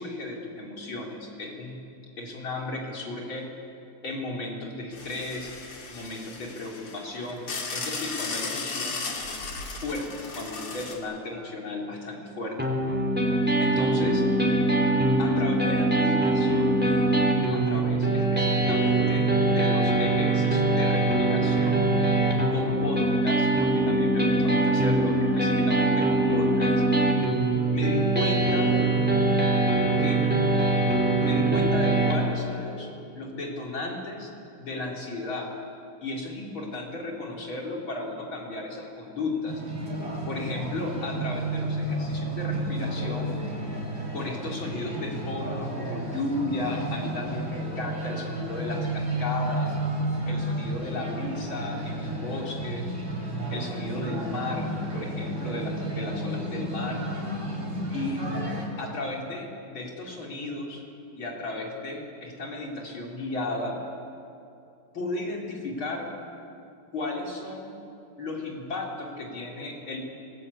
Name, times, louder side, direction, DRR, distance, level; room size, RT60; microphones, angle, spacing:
voice 1, 0.0-1.8 2.2-3.5 4.0-5.5 5.9-9.2 9.8-12.6 13.6-14.3 15.2-16.9 17.5-21.9 22.5-26.8 27.7-28.8 30.0-30.3 31.2-32.9 33.1-34.3 34.6-35.6 36.0-39.6 40.3-43.4 44.1-49.8 50.3-52.9 53.5-57.1 57.9-58.3 58.8-60.8 61.1-63.8 64.9-66.2 66.9-67.8 68.2-70.0, left 2 dB, 65° left, -1 dB, 4.7 m, -34 dB
sound 1, 4.9-10.9, left 4 dB, 85° left, 3.5 m, -36 dB
sound 2, 12.6-32.1, right 2 dB, 5° right, 3.4 m, -23 dB
sound 3, 39.5-58.7, right 1 dB, 55° right, 5.2 m, -32 dB
27.0 x 20.5 x 8.5 m, 2.7 s
omnidirectional pair, 2.4 m